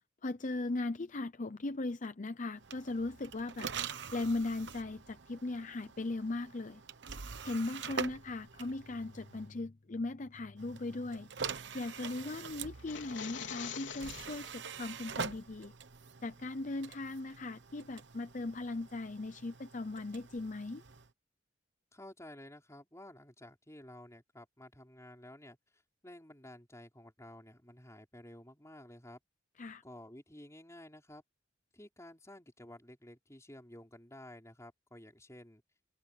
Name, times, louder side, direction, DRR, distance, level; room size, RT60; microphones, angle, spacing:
voice 1, 0.2-3.7 4.1-6.8 7.4-11.3 11.7-15.7 16.2-20.8 29.6-29.8, left 2 dB, 40° left, 0.7 m, -38 dB
sound 1, 2.6-9.5 10.6-21.1, right 6 dB, 65° right, 1.1 m, -45 dB
sound 2, 12.7-14.5, left 7 dB, 70° left, 4.2 m, -44 dB
voice 2, 21.9-25.6 26.0-29.2 29.8-31.2 31.7-35.6, left 1 dB, 15° left, 5.3 m, -52 dB
open air
head